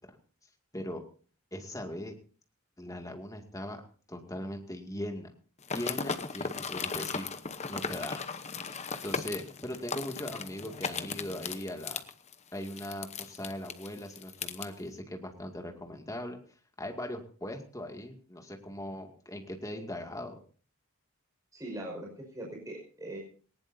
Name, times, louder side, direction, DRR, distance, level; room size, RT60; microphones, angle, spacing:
voice 1, 1.5-2.1 2.8-3.8 4.1-5.3 5.7-7.3 7.7-8.3 9.0-12.0 12.5-16.4 16.8-20.3, left 1 dB, 15° left, 4 dB, 2.3 m, -39 dB
sound 1, 5.6-14.7, left 5 dB, 30° left, 0.9 m, -37 dB
voice 2, 21.5-23.2, right 1 dB, 15° right, -1 dB, 5.4 m, -41 dB
19.5 x 19.0 x 2.7 m, 0.42 s
head